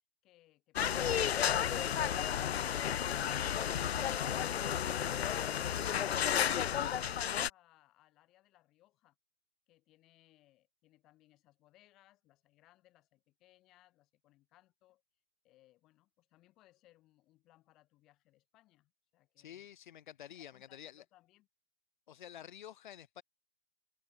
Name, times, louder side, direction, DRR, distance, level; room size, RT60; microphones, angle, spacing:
sound 1, 0.8-7.5, left 9 dB, 80° left, 1.2 m, -32 dB
voice 1, 5.9-9.2 9.7-15.0 15.4-19.7 20.5-21.5, left 16 dB, ahead, 0.3 m, -67 dB
voice 2, 19.4-21.0 22.1-23.2, left 10 dB, 50° left, 7.1 m, -50 dB
hypercardioid pair, 175°, 31 cm